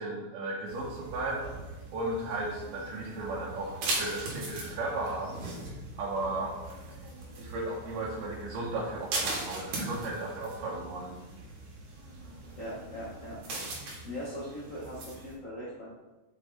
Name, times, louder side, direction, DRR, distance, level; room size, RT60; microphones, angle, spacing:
voice 1, 0.0-1.5 1.9-5.4 6.0-6.5 7.4-11.2, right 2 dB, 90° right, -4 dB, 2.5 m, -35 dB
sound 1, 0.7-15.3, right 2 dB, 70° right, 3.1 m, -40 dB
voice 2, 12.6-13.4 14.0-15.9, equal, 45° left, -8 dB, 1.0 m, -40 dB
6.6 x 5.3 x 4.1 m, 1.1 s
omnidirectional pair, 3.7 m